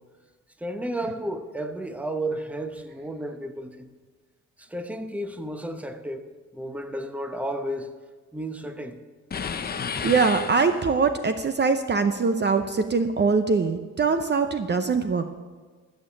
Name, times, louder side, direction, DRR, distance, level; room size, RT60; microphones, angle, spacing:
voice 1, 0.6-3.9 4.6-6.3 6.5-7.9 8.3-9.0, right 1 dB, 5° right, 0.9 m, -32 dB
sound 1, 9.3-11.1, left 6 dB, 30° left, 0.8 m, -32 dB
voice 2, 10.0-15.3, right 4 dB, 35° right, 0.7 m, -23 dB
14.0 x 6.6 x 7.2 m
cardioid pair, 90°, 30 cm